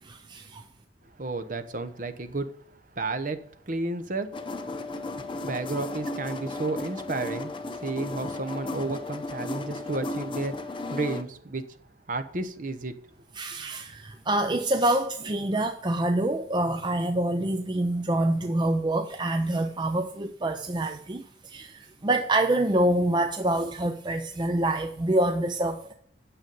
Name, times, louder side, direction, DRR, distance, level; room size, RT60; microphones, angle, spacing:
voice 1, 0.0-0.6 13.4-25.9, right 1 dB, 25° right, 0.4 m, -26 dB
voice 2, 1.2-2.5 2.9-4.3 5.4-11.7 12.1-12.9, right 3 dB, 45° right, 0.9 m, -32 dB
sound 1, 4.3-11.2, left 2 dB, 25° left, 0.7 m, -35 dB
9.2 x 7.0 x 5.4 m
head